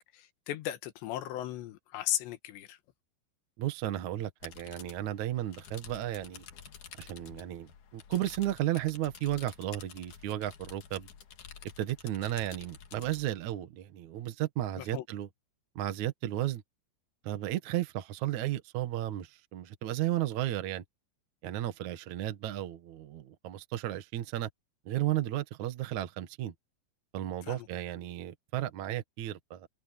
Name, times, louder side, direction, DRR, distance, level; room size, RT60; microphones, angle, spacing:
voice 1, 0.1-2.8 14.8-15.1 27.4-27.7, left 13 dB, 70° left, 3.3 m, -36 dB
voice 2, 3.6-6.4 7.0-11.1 11.8-15.3 15.8-16.6 17.2-20.8 21.4-24.5 24.9-26.5 27.1-29.7, right 13 dB, 70° right, 1.8 m, -34 dB
sound 1, 4.4-13.3, left 7 dB, 55° left, 2.7 m, -50 dB
omnidirectional pair, 5.6 m